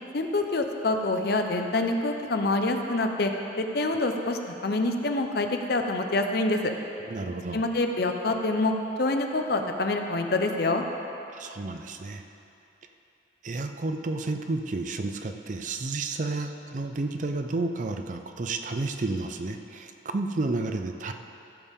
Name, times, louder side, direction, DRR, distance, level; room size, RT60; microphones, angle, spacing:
voice 1, 0.1-3.3 3.6-6.7 7.5-10.8, left 2 dB, 55° left, 4 dB, 0.7 m, -26 dB
voice 2, 7.1-7.6 11.3-12.2 13.4-21.1, right 3 dB, 40° right, 6 dB, 0.5 m, -31 dB
15.5 x 7.2 x 3.6 m, 2.8 s
head